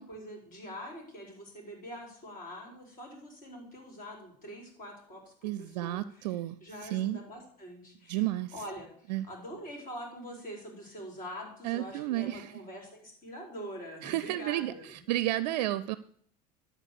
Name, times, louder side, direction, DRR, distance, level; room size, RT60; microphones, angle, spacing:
voice 1, 0.0-6.4 6.6-15.0 15.6-15.7, equal, 40° left, 1 dB, 4.6 m, -44 dB
voice 2, 5.4-6.6 6.8-7.2 8.1-8.5 9.1-9.3 11.6-12.5 14.0-16.0, right 15 dB, 75° right, 16 dB, 0.4 m, -32 dB
11.5 x 4.4 x 6.7 m, 0.62 s
hypercardioid pair, 85°, 21 cm